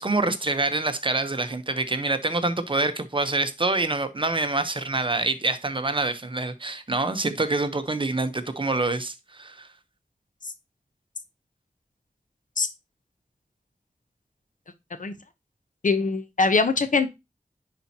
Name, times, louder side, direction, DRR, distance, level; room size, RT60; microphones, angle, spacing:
voice 1, 0.0-9.7, right 2 dB, 35° right, 0.9 m, -26 dB
voice 2, 15.8-17.1, left 4 dB, 65° left, 0.8 m, -22 dB
10.0 x 4.3 x 2.8 m
wide cardioid pair, 65°, 14 cm